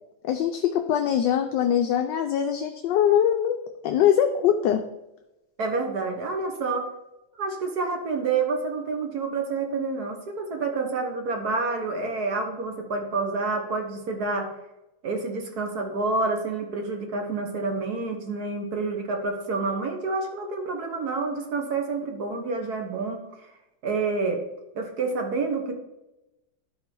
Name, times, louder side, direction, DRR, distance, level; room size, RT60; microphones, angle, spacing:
voice 1, 0.2-3.6 3.8-4.8, left 9 dB, 75° left, 5 dB, 1.2 m, -22 dB
voice 2, 5.6-6.9 7.4-14.5 15.0-23.5 23.8-24.4 24.8-25.7, right 3 dB, 55° right, 4 dB, 1.8 m, -28 dB
12.5 x 4.8 x 4.6 m, 0.94 s
omnidirectional pair, 2.1 m